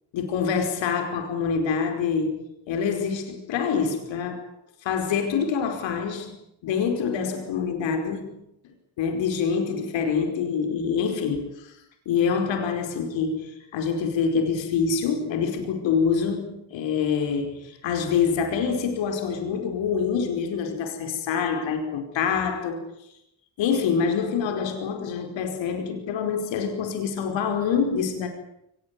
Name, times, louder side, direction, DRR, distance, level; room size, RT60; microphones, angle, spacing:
voice 1, 0.1-4.4 4.8-8.4 9.0-11.7 12.0-22.8 23.6-28.3, left 6 dB, 85° left, 5 dB, 5.0 m, -26 dB
23.5 x 20.5 x 9.7 m, 0.78 s
cardioid pair, 75°, 44 cm